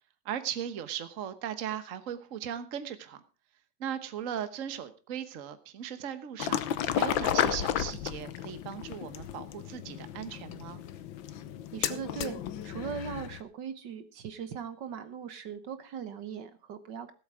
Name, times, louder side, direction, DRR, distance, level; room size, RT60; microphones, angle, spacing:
voice 1, 0.2-3.2 3.8-6.6 6.9-10.8, right 9 dB, 45° right, 11 dB, 1.3 m, -38 dB
sound 1, 6.4-13.4, left 10 dB, 80° left, 1.6 m, -33 dB
voice 2, 11.7-17.1, right 7 dB, 65° right, 11 dB, 1.6 m, -39 dB
17.5 x 8.1 x 4.9 m, 0.34 s
omnidirectional pair, 2.1 m